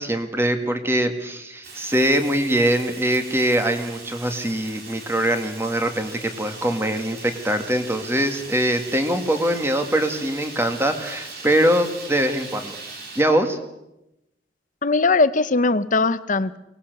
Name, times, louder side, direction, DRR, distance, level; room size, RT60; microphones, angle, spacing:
voice 1, 0.0-12.8 13.2-13.6, right 1 dB, 15° right, 7 dB, 2.0 m, -22 dB
Fire, 1.6-13.2, right 3 dB, 60° right, 4.0 m, -39 dB
voice 2, 14.8-16.6, left 3 dB, 50° left, 14 dB, 0.8 m, -20 dB
23.5 x 19.0 x 6.8 m, 0.89 s
head